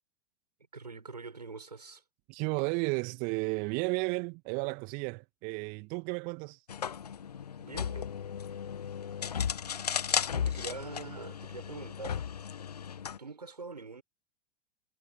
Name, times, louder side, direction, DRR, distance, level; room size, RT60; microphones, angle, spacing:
voice 1, 0.7-2.0 7.6-8.1 9.2-9.3 10.3-12.2 13.2-14.0, right 4 dB, 80° right, 6.5 m, -44 dB
voice 2, 2.3-6.6, right 32 dB, 40° right, 2.3 m, -33 dB
sound 1, 6.7-13.2, left 8 dB, 70° left, 1.4 m, -35 dB
figure-of-eight pair, 90°, 21 cm